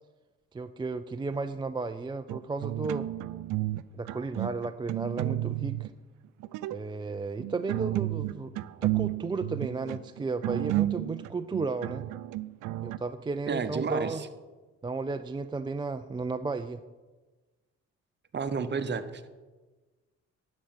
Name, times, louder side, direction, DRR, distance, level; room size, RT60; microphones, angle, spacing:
voice 1, 0.5-3.1 4.0-5.9 6.7-8.5 8.8-12.1 12.8-14.2 14.8-16.8, right 3 dB, 15° right, 8 dB, 0.4 m, -34 dB
sound 1, 2.3-5.9 6.4-6.8 7.4-13.0, right 16 dB, 85° right, 0.5 m, -32 dB
voice 2, 13.5-14.1 18.3-19.3, right 5 dB, 35° right, 11 dB, 0.9 m, -31 dB
11.0 x 5.3 x 7.8 m, 1.3 s
cardioid pair, 90°, 30 cm